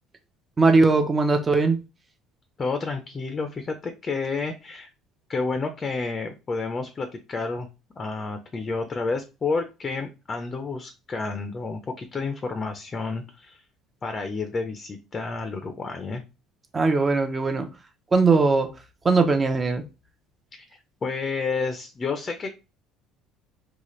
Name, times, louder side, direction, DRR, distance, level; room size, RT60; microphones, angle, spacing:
voice 1, 0.6-1.8 16.7-17.7 18.1-18.7 19.0-19.8, right 3 dB, 25° right, 0.8 m, -20 dB
voice 2, 2.6-4.9 5.3-7.7 8.0-13.6 14.0-16.2 21.0-22.5, left 4 dB, 30° left, 0.6 m, -30 dB
4.0 x 2.4 x 3.1 m
supercardioid pair, 100°, 0 cm